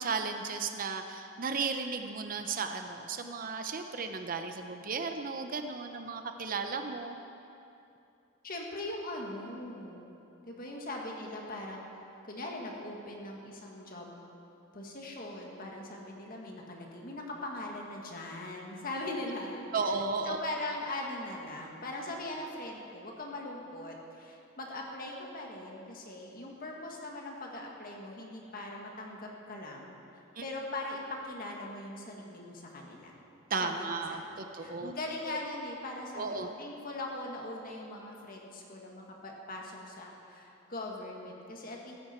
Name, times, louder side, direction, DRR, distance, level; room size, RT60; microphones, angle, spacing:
voice 1, 0.0-7.2 19.7-20.4 30.4-30.5 33.5-34.9 35.3-35.4 36.2-36.5, right 4 dB, 45° right, 6 dB, 0.7 m, -34 dB
voice 2, 8.4-10.0 10.5-11.8 12.2-14.2 14.7-20.0 20.3-29.9 30.4-33.2 33.6-41.9, left 2 dB, 45° left, 0 dB, 1.8 m, -40 dB
15.5 x 15.0 x 4.5 m, 2.8 s
head